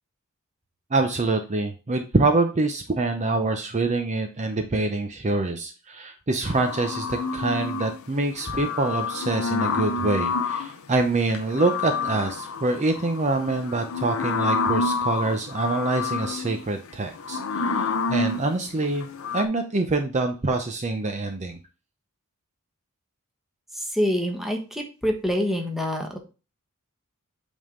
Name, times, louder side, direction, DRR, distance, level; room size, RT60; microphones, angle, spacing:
voice 1, 0.9-19.1 19.3-21.6, right 2 dB, 30° right, 6 dB, 0.6 m, -25 dB
sound 1, 6.4-8.0 8.3-10.8 11.3-19.5, left 4 dB, 65° left, 0.6 m, -28 dB
voice 2, 23.7-26.2, equal, ahead, 2 dB, 1.1 m, -26 dB
8.2 x 3.6 x 3.7 m, 0.32 s
head